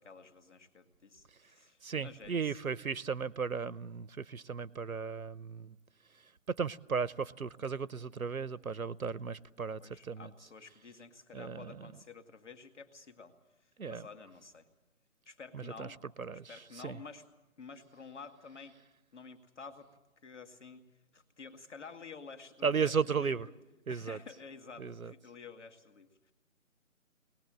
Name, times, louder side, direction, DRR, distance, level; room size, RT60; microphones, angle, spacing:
voice 1, 0.0-2.6 9.8-13.4 13.6-14.7 15.3-16.0 16.5-17.2 17.6-18.8 19.1-19.9 20.2-20.8 21.1-23.5 23.9-26.3, left 5 dB, 55° left, 2.2 m, -51 dB
voice 2, 1.8-5.8 6.5-10.3 11.3-11.9 13.8-14.0 15.5-15.9 16.2-17.0 22.6-23.5 23.9-24.2 24.8-25.1, right 5 dB, 80° right, 0.8 m, -35 dB
24.0 x 19.5 x 7.6 m
figure-of-eight pair, 150°, 42 cm